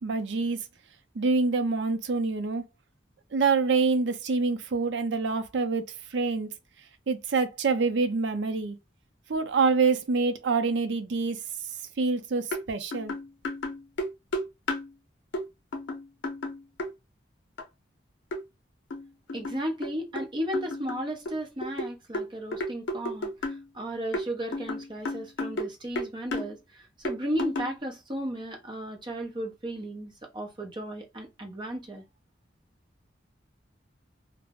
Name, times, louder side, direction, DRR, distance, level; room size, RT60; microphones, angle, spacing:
voice 1, 0.0-0.6 1.2-2.6 3.3-5.8 6.1-6.5 7.1-8.8 9.3-11.4 12.0-13.1, right 4 dB, 75° right, 0.5 m, -26 dB
sound 1, 12.5-12.6 12.9-14.9 15.3-15.5 15.7-16.9 17.6-17.7 18.3-18.4 18.9-20.3 20.5-23.6 24.1-25.7 26.0-26.5 27.0-27.8, left 1 dB, 80° left, 0.5 m, -33 dB
voice 2, 19.3-32.0, equal, 25° right, 0.6 m, -35 dB
2.3 x 2.0 x 3.4 m
head